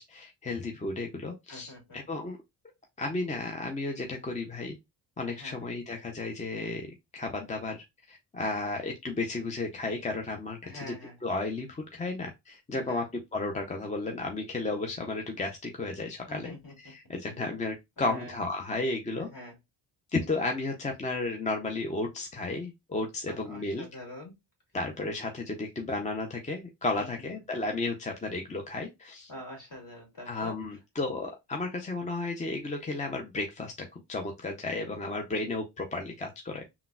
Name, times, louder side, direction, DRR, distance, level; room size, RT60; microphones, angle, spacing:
voice 1, 0.0-2.4 3.0-4.8 5.2-10.9 11.2-16.5 16.8-19.3 20.1-23.9 24.7-29.3 30.3-36.7, left 2 dB, 15° left, 0.5 m, -33 dB
voice 2, 1.5-2.0 5.2-5.6 10.6-11.2 12.7-13.1 16.3-16.7 17.3-17.4 18.0-18.4 19.2-19.6 23.3-24.3 27.0-27.3 29.3-30.6, left 1 dB, 45° left, 2.0 m, -45 dB
3.7 x 2.2 x 2.3 m
cardioid pair, 90°, 44 cm